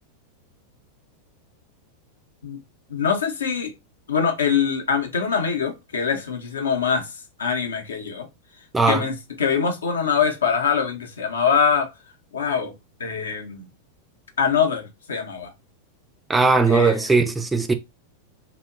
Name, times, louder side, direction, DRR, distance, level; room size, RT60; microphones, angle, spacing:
voice 1, 2.9-3.7 4.1-8.3 8.8-11.9 12.3-13.7 14.4-15.5 16.7-17.1, left 6 dB, 70° left, 0.5 m, -24 dB
voice 2, 16.3-17.7, right 4 dB, 10° right, 0.3 m, -18 dB
2.8 x 2.1 x 2.3 m
figure-of-eight pair, 90°, 0 cm